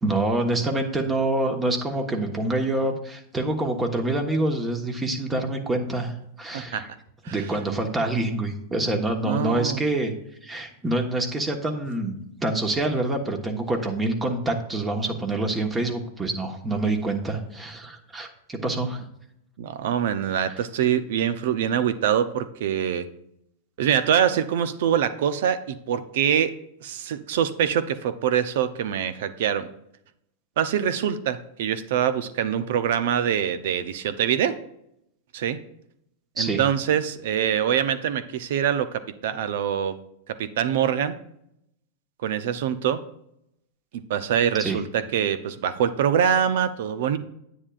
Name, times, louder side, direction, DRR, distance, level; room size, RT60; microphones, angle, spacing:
voice 1, 0.0-6.9 7.3-10.1 10.4-19.0 36.4-36.6 44.6-44.8, right 2 dB, 15° right, 4 dB, 1.3 m, -26 dB
voice 2, 6.5-6.8 7.2-7.4 9.2-9.8 19.6-23.1 23.8-26.5 26.8-29.7 30.6-34.6 35.3-35.6 36.4-40.0 40.3-41.1 42.2-43.0 43.9-47.2, right 9 dB, 65° right, 13 dB, 0.6 m, -24 dB
9.6 x 9.0 x 2.5 m, 0.76 s
hypercardioid pair, 105°, 0 cm